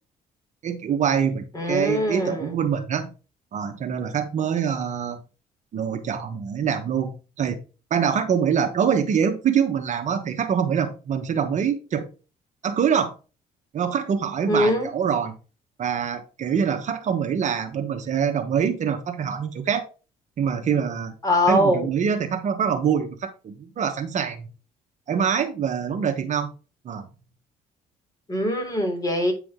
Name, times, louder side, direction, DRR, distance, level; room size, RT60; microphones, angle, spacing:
voice 1, 0.6-3.1 3.5-5.2 5.7-7.6 7.9-12.1 12.6-13.1 13.7-15.4 15.8-19.9 20.4-21.1 21.5-24.5 25.1-26.5 26.8-27.1, right 7 dB, 50° right, 6 dB, 1.1 m, -24 dB
voice 2, 1.5-2.5 14.5-14.9 21.2-21.9 28.3-29.3, equal, 25° left, 2 dB, 3.4 m, -22 dB
9.1 x 4.8 x 3.7 m, 0.33 s
cardioid pair, 95°, 16 cm